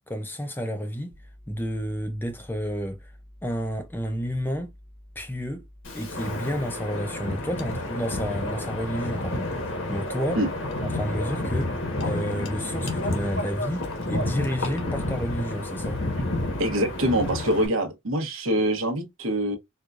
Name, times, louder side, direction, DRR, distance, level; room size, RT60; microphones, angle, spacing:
voice 1, 0.1-1.1 1.5-3.0 3.4-4.7 5.2-5.6 5.9-10.4 10.8-11.7 12.0-16.0, equal, 10° left, 0.5 m, -31 dB
sound 1, 1.1-17.1, left 1 dB, 45° right, 0.7 m, -50 dB
Wind, 5.8-17.7, left 2 dB, 70° left, 1.1 m, -30 dB
voice 2, 16.6-19.6, right 1 dB, 80° right, 1.0 m, -24 dB
4.5 x 2.3 x 2.4 m
head